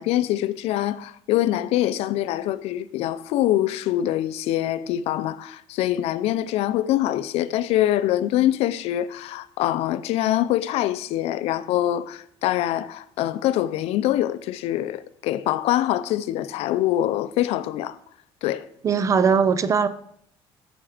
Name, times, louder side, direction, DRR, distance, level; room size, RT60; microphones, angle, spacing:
voice 1, 0.0-18.0 18.4-18.7, left 13 dB, 75° left, 0.6 m, -24 dB
voice 2, 18.8-19.9, right 6 dB, 30° right, 0.6 m, -19 dB
14.0 x 6.0 x 5.0 m
cardioid pair, 155°, 11 cm